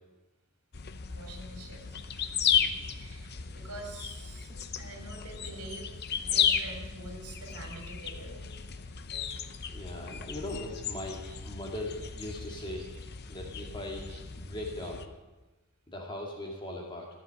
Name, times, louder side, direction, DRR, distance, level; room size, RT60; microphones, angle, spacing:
sound 1, 0.7-15.1, left 8 dB, 45° left, 0.8 m, -34 dB
voice 1, 1.1-2.3 2.9-4.5 4.8-8.4 11.3-11.4 12.5-12.9 14.1-14.2 14.8-14.9, right 2 dB, 85° right, 2 dB, 3.0 m, -46 dB
voice 2, 2.5-2.9 3.3-3.7 4.4-4.9 9.7-12.9 13.3-15.0 15.9-17.1, left 1 dB, 20° left, 0 dB, 2.0 m, -40 dB
14.0 x 7.5 x 9.3 m, 1.1 s
head